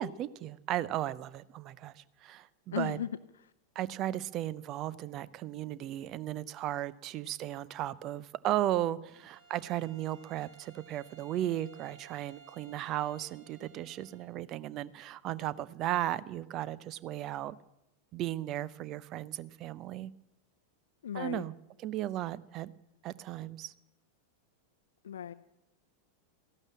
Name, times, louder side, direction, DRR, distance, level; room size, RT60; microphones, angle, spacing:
voice 1, 0.0-3.0 3.8-17.6 18.1-20.1 21.1-21.5 21.8-22.7 23.0-23.7, right 13 dB, 35° right, 19 dB, 0.6 m, -35 dB
voice 2, 2.7-3.1 21.0-21.4 25.0-25.3, left 9 dB, 65° left, 12 dB, 0.7 m, -35 dB
Bowed string instrument, 9.1-14.3, right 5 dB, 70° right, 4.6 m, -58 dB
15.0 x 11.5 x 7.4 m, 0.88 s
figure-of-eight pair, 90°, 0 cm